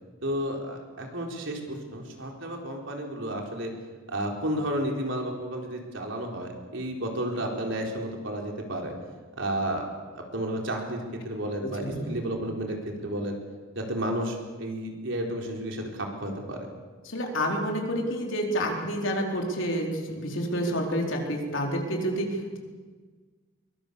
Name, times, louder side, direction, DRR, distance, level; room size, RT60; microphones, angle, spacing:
voice 1, 0.2-3.7 4.1-8.9 9.4-9.9 10.3-13.4 13.8-16.6, right 1 dB, 65° right, 1 dB, 4.3 m, -32 dB
voice 2, 11.6-12.1 17.0-22.6, equal, 70° left, 1 dB, 4.5 m, -29 dB
23.5 x 23.0 x 7.0 m, 1.4 s
head